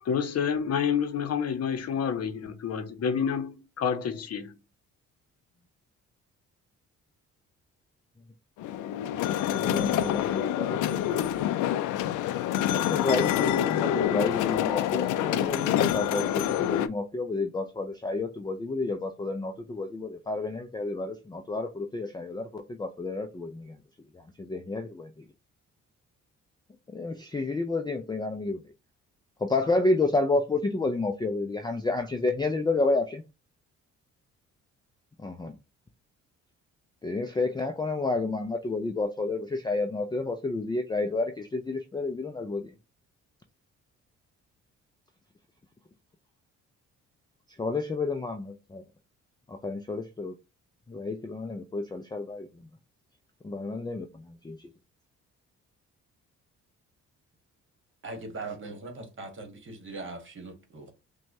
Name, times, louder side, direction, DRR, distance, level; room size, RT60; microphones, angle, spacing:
voice 1, 0.0-4.5, left 7 dB, 55° left, 0.8 m, -29 dB
sound 1, 8.6-16.9, left 11 dB, 85° left, 0.5 m, -27 dB
voice 2, 9.5-11.2 12.7-23.8 24.1-25.3 26.9-28.6 29.4-33.2 35.2-35.6 37.0-42.7 47.6-48.8 49.5-50.4 50.9-52.5 53.4-54.7, left 3 dB, 15° left, 0.4 m, -30 dB
voice 3, 58.0-60.9, right 3 dB, 40° right, 1.5 m, -40 dB
5.9 x 2.3 x 2.7 m
cardioid pair, 90°, 30 cm